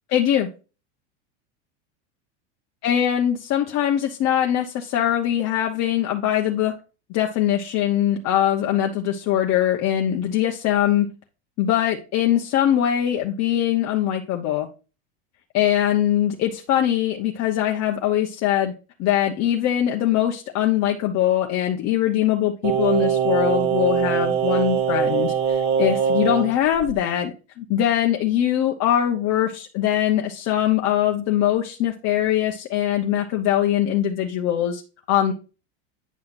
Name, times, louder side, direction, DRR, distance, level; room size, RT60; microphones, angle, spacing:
voice 1, 0.1-0.5 2.8-6.7 7.1-11.1 11.6-14.7 15.5-18.7 19.0-34.8 35.1-35.3, left 11 dB, 45° left, 1.0 m, -22 dB
Singing, 22.6-26.5 26.8-26.9, right 8 dB, 60° right, 2.2 m, -22 dB
9.4 x 5.7 x 2.5 m
supercardioid pair, 125°, 36 cm